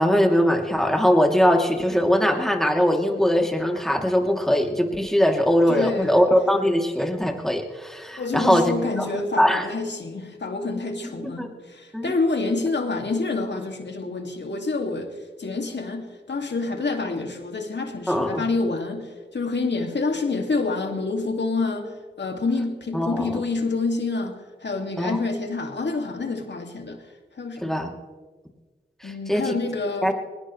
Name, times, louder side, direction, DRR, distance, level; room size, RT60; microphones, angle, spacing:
voice 1, 0.0-9.1 9.4-9.7 11.4-11.5 11.9-12.1 18.1-18.4 22.9-23.4 25.0-25.2 27.6-27.9 29.0-29.5 30.0-30.1, equal, ahead, 1 dB, 2.9 m, -21 dB
voice 2, 5.7-6.3 8.2-27.8 29.0-30.1, left 3 dB, 70° left, 3 dB, 2.4 m, -28 dB
20.0 x 20.0 x 3.3 m, 1.3 s
cardioid pair, 40°, 19 cm